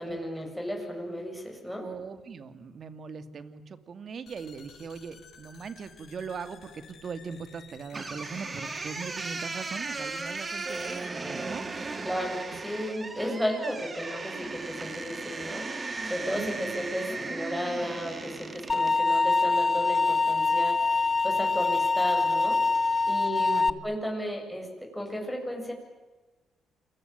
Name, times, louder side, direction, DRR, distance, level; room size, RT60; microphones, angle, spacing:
voice 1, 0.0-1.9 12.0-22.6 23.1-25.7, equal, ahead, 1 dB, 7.6 m, -34 dB
voice 2, 1.8-11.7 12.5-12.6 16.3-16.9 23.4-23.8, right 5 dB, 50° right, 11 dB, 2.4 m, -40 dB
sound 1, 4.3-11.1, left 7 dB, 60° left, 5.3 m, -53 dB
sound 2, 7.9-19.0, right 3 dB, 30° right, 3.3 m, -36 dB
sound 3, 18.7-23.7, left 3 dB, 30° left, 1.1 m, -24 dB
28.5 x 22.0 x 9.3 m, 1.2 s
cardioid pair, 90°, 0 cm